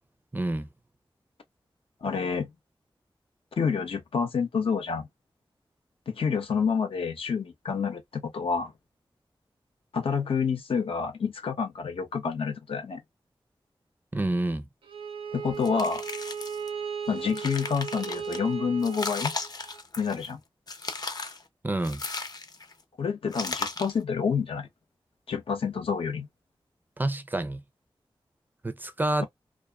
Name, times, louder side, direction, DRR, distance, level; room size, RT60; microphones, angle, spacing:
voice 1, 0.3-0.7 14.1-14.6 21.6-22.0 27.0-27.6 28.6-29.3, right 1 dB, 20° right, 0.4 m, -28 dB
voice 2, 2.0-2.5 3.6-5.1 6.1-8.7 9.9-13.0 15.3-16.0 17.1-19.3 20.0-20.4 23.0-24.7 25.3-26.3, left 6 dB, 90° left, 0.8 m, -28 dB
Bowed string instrument, 14.8-19.8, right 7 dB, 75° right, 0.7 m, -36 dB
sound 1, 15.6-16.7 17.1-18.4 18.8-20.3 20.7-21.4 21.8-22.7 23.3-24.0, left 3 dB, 45° left, 0.6 m, -36 dB
2.5 x 2.4 x 2.2 m
wide cardioid pair, 85°, 9 cm